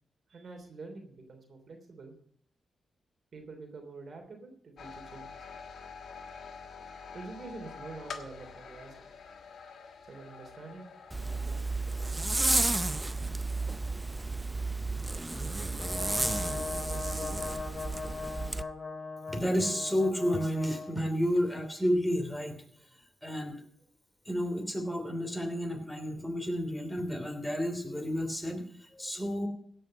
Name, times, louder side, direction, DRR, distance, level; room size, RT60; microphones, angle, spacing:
voice 1, 0.3-2.1 3.3-5.5 7.1-9.1 10.1-10.8 11.2-13.1, right 3 dB, 60° right, 4 dB, 3.1 m, -47 dB
sound 1, 4.8-14.4, left 5 dB, 70° left, 1.4 m, -48 dB
Zipper (clothing), 11.1-18.6, right 2 dB, 20° right, 0.5 m, -32 dB
Brass instrument, 15.8-21.0, left 4 dB, 50° left, 3.8 m, -39 dB
voice 2, 19.3-22.6 23.2-23.6 24.2-29.5, equal, 5° left, 4 dB, 3.1 m, -31 dB
16.5 x 5.6 x 7.6 m, 0.64 s
supercardioid pair, 50°, 0 cm